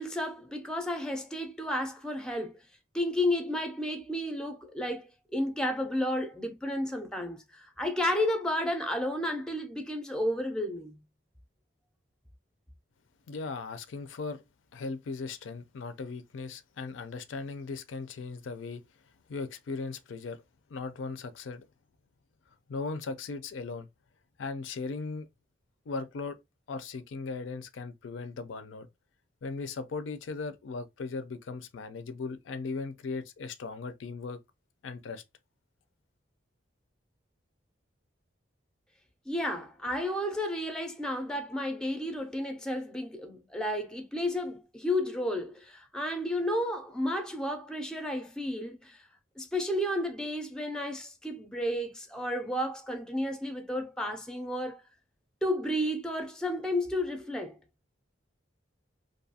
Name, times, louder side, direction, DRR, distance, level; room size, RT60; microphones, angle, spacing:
voice 1, 0.0-2.5 2.9-11.0 39.3-49.0 49.4-54.8 55.4-57.6, left 1 dB, 5° left, 0.4 m, -32 dB
voice 2, 13.3-14.4 14.7-18.8 19.3-20.4 20.7-21.6 22.7-23.9 24.4-25.3 25.9-26.4 26.7-28.9 29.4-34.4 34.8-35.2, left 4 dB, 80° left, 0.4 m, -38 dB
2.6 x 2.3 x 2.6 m
head